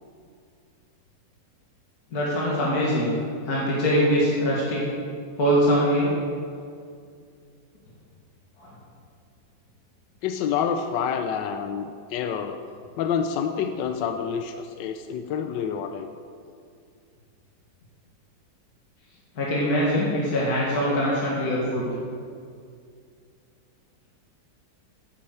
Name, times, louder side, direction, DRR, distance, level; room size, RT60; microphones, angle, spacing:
voice 1, 2.1-3.1 3.5-4.8 5.4-6.1 8.6-8.7 19.4-21.9, equal, 55° left, -6 dB, 2.5 m, -23 dB
voice 2, 10.2-12.6 13.0-16.1, left 7 dB, 80° left, 7 dB, 1.3 m, -28 dB
10.0 x 8.6 x 8.0 m, 2.3 s
omnidirectional pair, 2.0 m